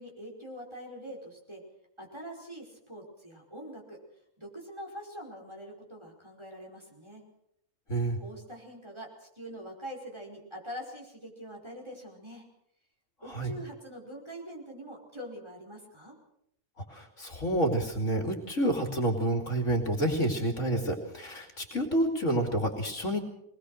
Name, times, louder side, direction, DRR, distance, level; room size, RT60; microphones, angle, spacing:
voice 1, 0.0-1.6 2.0-4.0 4.4-7.2 8.1-12.4 13.2-16.1, equal, 20° right, -1 dB, 5.1 m, -44 dB
voice 2, 16.9-23.2, right 1 dB, 55° left, 4 dB, 3.0 m, -29 dB
22.0 x 20.0 x 6.5 m, 0.76 s
omnidirectional pair, 1.5 m